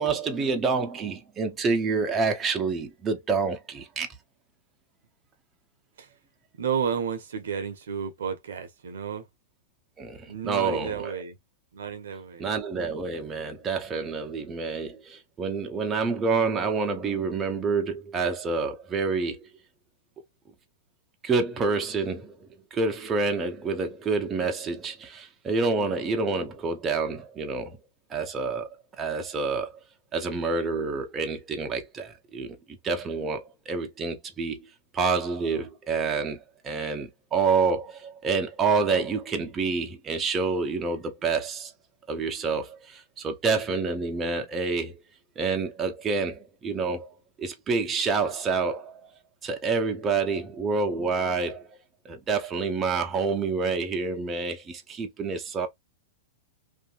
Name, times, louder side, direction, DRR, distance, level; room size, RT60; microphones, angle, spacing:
voice 1, 0.0-4.1 10.0-11.2 12.4-19.5 21.2-27.8 28.1-28.7 29.0-29.7 30.1-34.6 34.9-41.7 42.1-45.0 45.4-47.1 47.4-49.1 49.4-51.7 52.0-55.7, right 4 dB, 25° right, 0.6 m, -28 dB
voice 2, 6.6-9.3 10.3-11.4 11.7-12.5, right 7 dB, 75° right, 0.8 m, -31 dB
2.7 x 2.5 x 2.3 m
hypercardioid pair, 110°, 0 cm